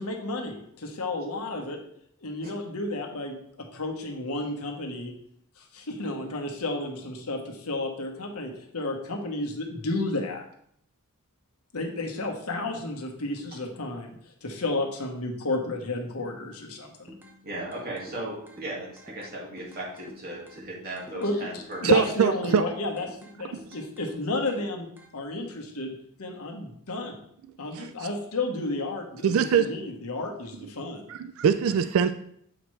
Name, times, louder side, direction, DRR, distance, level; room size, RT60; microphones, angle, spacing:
voice 1, 0.0-1.8 2.2-3.4 3.7-5.1 5.6-10.4 11.7-14.1 14.4-17.1 21.1-23.1 23.3-24.9 25.1-27.2 27.6-31.0, left 2 dB, 80° left, 2 dB, 1.2 m, -32 dB
sound 1, 17.1-25.1, equal, 10° right, 0.7 m, -50 dB
voice 2, 17.4-21.9, right 1 dB, 45° right, -4 dB, 2.0 m, -37 dB
voice 3, 21.8-22.6 23.5-23.6 27.7-28.1 29.2-29.7 31.1-32.1, right 7 dB, 65° right, 11 dB, 0.3 m, -23 dB
7.5 x 4.9 x 3.2 m, 0.68 s
head